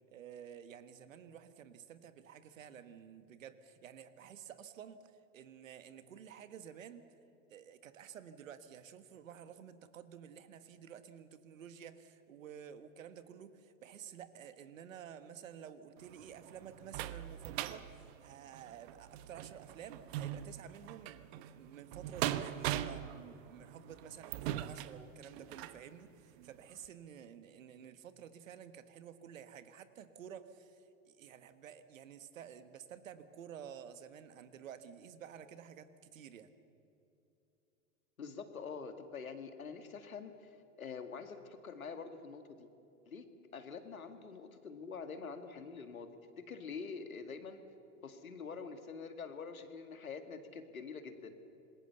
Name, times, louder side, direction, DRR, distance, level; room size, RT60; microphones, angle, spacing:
voice 1, 0.1-5.0 5.3-7.0 7.5-36.5, right 8 dB, 70° right, 11 dB, 1.6 m, -51 dB
sound 1, 16.0-25.8 26.4-26.5 26.8-26.9, right 12 dB, 50° right, 1.1 m, -41 dB
voice 2, 38.2-42.7 43.1-43.3 43.5-46.1 46.5-47.6 48.0-51.4, left 5 dB, 85° left, 8 dB, 2.1 m, -46 dB
26.5 x 21.0 x 6.9 m, 2.8 s
hypercardioid pair, 100°, 41 cm